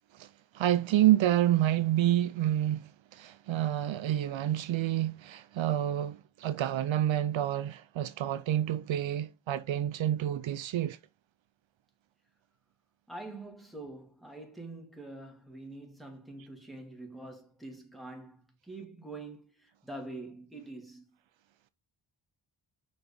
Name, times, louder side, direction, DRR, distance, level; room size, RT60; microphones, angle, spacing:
voice 1, 0.1-11.0, right 12 dB, 75° right, 0.7 m, -28 dB
voice 2, 13.1-21.0, right 2 dB, ahead, 2.6 m, -45 dB
6.0 x 5.2 x 5.4 m
cardioid pair, 95°, 46 cm